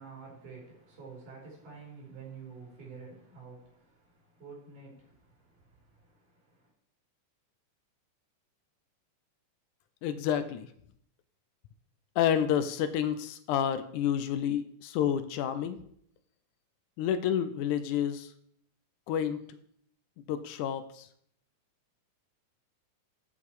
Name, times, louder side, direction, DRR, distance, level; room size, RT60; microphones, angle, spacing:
voice 1, 0.0-6.7, right 5 dB, 80° right, 6.7 m, -49 dB
voice 2, 10.0-10.7 12.2-15.8 17.0-18.3 19.1-19.4 20.3-21.1, left 9 dB, 80° left, 2.0 m, -29 dB
14.5 x 5.7 x 4.8 m
omnidirectional pair, 3.6 m